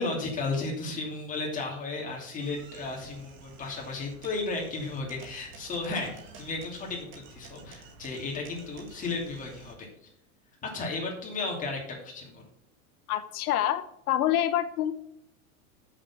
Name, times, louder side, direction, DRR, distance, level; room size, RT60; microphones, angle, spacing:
voice 1, 0.0-9.9 10.6-12.4, left 3 dB, 20° left, -1 dB, 2.7 m, -34 dB
sound 1, 2.4-9.7, right 4 dB, 25° right, 1.4 m, -51 dB
voice 2, 13.1-14.9, left 12 dB, 80° left, 11 dB, 0.8 m, -27 dB
7.4 x 6.7 x 5.5 m, 0.74 s
supercardioid pair, 150°, 43 cm